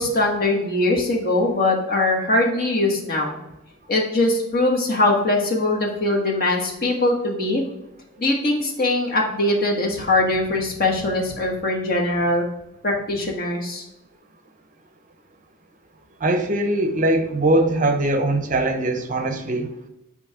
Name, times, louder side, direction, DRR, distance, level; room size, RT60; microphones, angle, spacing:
voice 1, 0.0-3.4 3.9-7.6 8.2-12.4 12.8-13.8, left 2 dB, 45° left, -1 dB, 1.5 m, -21 dB
voice 2, 16.2-19.7, right 1 dB, 40° right, 6 dB, 0.6 m, -21 dB
8.7 x 3.2 x 3.6 m, 0.91 s
head